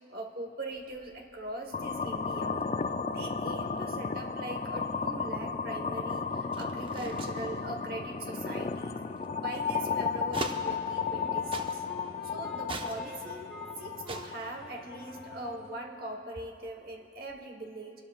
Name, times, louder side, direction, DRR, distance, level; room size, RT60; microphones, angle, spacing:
voice 1, 0.1-2.6 3.1-9.0 9.4-11.8 12.2-13.5 13.8-17.9, right 2 dB, 50° right, 2 dB, 1.2 m, -41 dB
sound 1, 0.7-11.3 11.5-12.1 12.6-13.7 14.0-15.8 16.1-17.4, right 2 dB, 25° right, 0.6 m, -45 dB
sound 2, 1.7-15.7, left 5 dB, 35° left, 0.3 m, -34 dB
Wind instrument woodwind instrument, 11.0-16.1, right 1 dB, ahead, 1.1 m, -50 dB
27.5 x 12.0 x 2.3 m, 2.7 s
head